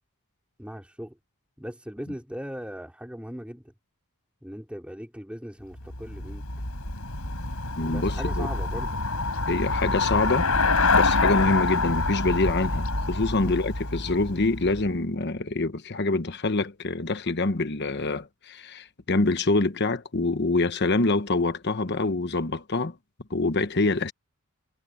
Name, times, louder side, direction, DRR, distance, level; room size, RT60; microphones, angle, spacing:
voice 1, 0.6-1.2 1.6-3.7 4.4-6.4 7.8-9.0 13.4-13.6, equal, 5° right, 4.1 m, -39 dB
Traffic noise roadway noise / Bicycle, 5.8-15.0, left 3 dB, 80° left, 5.7 m, -26 dB
voice 2, 7.8-8.5 9.5-10.5 10.9-23.0 23.3-24.1, left 2 dB, 50° left, 1.1 m, -25 dB
head